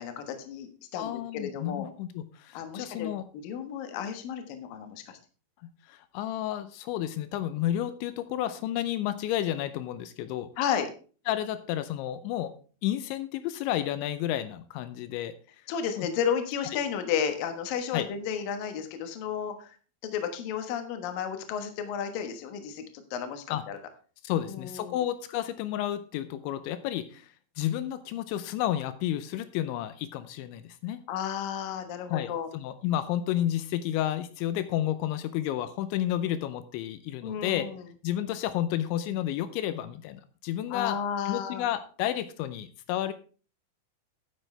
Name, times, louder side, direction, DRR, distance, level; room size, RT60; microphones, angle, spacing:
voice 1, 0.0-1.9 2.5-5.2 10.6-10.9 15.7-19.8 20.0-23.8 24.3-25.0 31.1-32.5 37.2-37.8 40.7-41.6, left 8 dB, 65° left, 7 dB, 2.6 m, -33 dB
voice 2, 1.0-3.2 5.6-10.5 11.3-12.5 12.8-15.3 16.0-16.1 17.9-18.1 23.5-23.6 24.2-31.0 32.1-37.7 38.0-41.0 41.3-43.1, left 12 dB, 85° left, 11 dB, 3.0 m, -31 dB
12.5 x 9.2 x 3.3 m, 0.38 s
omnidirectional pair, 5.3 m